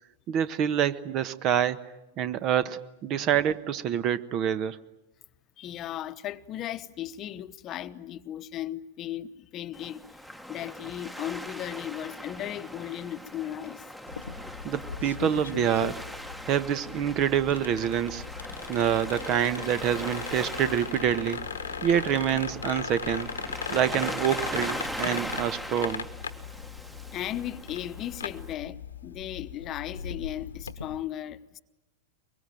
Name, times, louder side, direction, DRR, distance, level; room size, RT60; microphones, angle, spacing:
voice 1, 0.3-1.8 2.2-4.8 14.6-16.0 16.4-18.2 18.7-21.4 21.8-23.3 23.7-26.1, right 9 dB, 40° right, 1.1 m, -26 dB
voice 2, 5.6-10.2 10.5-13.9 27.1-31.6, left 12 dB, 35° left, 1.0 m, -36 dB
Waves surf, 9.7-28.5, equal, 5° right, 1.2 m, -40 dB
sound 1, 14.1-31.0, left 6 dB, 85° left, 1.3 m, -38 dB
23.5 x 23.0 x 9.1 m
hypercardioid pair, 95°, 0 cm